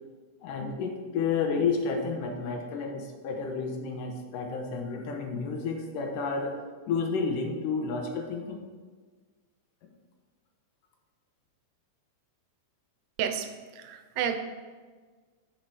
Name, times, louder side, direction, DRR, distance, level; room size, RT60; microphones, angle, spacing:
voice 1, 0.4-6.6 6.9-8.6, left 4 dB, 90° left, 3 dB, 2.6 m, -31 dB
voice 2, 13.9-14.4, right 9 dB, 80° right, 8 dB, 2.2 m, -29 dB
10.5 x 5.6 x 4.8 m, 1.5 s
omnidirectional pair, 3.7 m